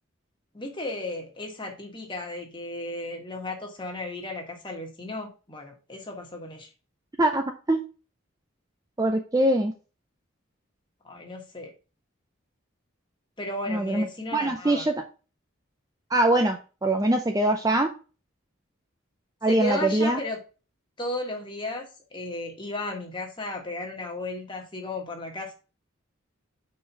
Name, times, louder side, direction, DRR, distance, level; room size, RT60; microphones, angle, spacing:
voice 1, 0.5-6.7 11.0-11.7 13.4-14.8 19.5-20.4 21.0-25.5, left 2 dB, 25° left, 1 dB, 1.4 m, -34 dB
voice 2, 7.2-7.8 9.0-9.7 13.7-14.1 14.3-14.9 16.1-17.9 19.4-20.2, right 1 dB, 15° right, 5 dB, 0.4 m, -23 dB
4.8 x 4.5 x 5.3 m, 0.34 s
head